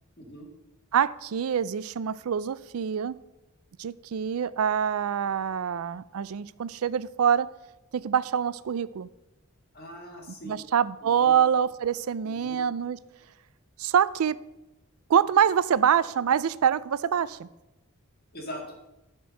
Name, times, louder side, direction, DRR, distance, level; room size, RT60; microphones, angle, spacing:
voice 1, 0.2-0.5 9.7-10.6 11.0-11.4 12.3-12.6 18.3-18.6, equal, 45° left, 1 dB, 2.1 m, -41 dB
voice 2, 0.9-3.1 3.8-7.5 7.9-9.1 10.4-13.0 13.8-14.4 15.1-17.5, right 8 dB, 75° right, 18 dB, 0.4 m, -25 dB
11.0 x 4.5 x 6.4 m, 0.99 s
head